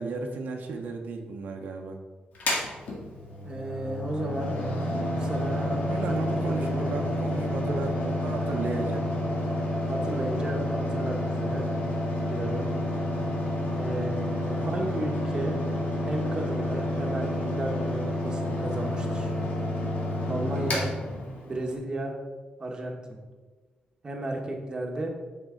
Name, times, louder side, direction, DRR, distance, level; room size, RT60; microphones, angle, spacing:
voice 1, 0.0-2.0 5.9-9.1 14.6-14.9, right 3 dB, 80° right, 2 dB, 0.9 m, -34 dB
Mechanical fan, 2.3-21.7, left 1 dB, 65° left, 2.0 m, -29 dB
voice 2, 3.4-4.5 5.2-6.2 6.4-6.9 9.8-11.7 12.3-12.7 13.7-15.6 16.0-19.3 20.3-20.9 21.4-22.2 22.6-23.2 24.0-25.1, right 1 dB, 25° right, 0 dB, 1.3 m, -33 dB
8.9 x 5.5 x 3.9 m, 1.3 s
wide cardioid pair, 145°, 3 cm